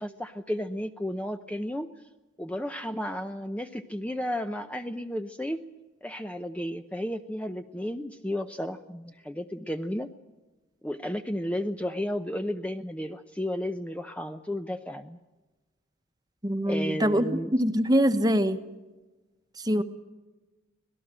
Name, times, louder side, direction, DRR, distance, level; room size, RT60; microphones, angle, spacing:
voice 1, 0.0-1.9 2.4-5.6 6.0-10.1 10.8-15.2 16.7-17.5 19.8-19.9, equal, 5° left, 7 dB, 0.7 m, -33 dB
voice 2, 16.4-18.6 19.6-19.8, equal, 20° right, 9 dB, 1.1 m, -24 dB
25.5 x 18.0 x 7.6 m, 1.1 s
head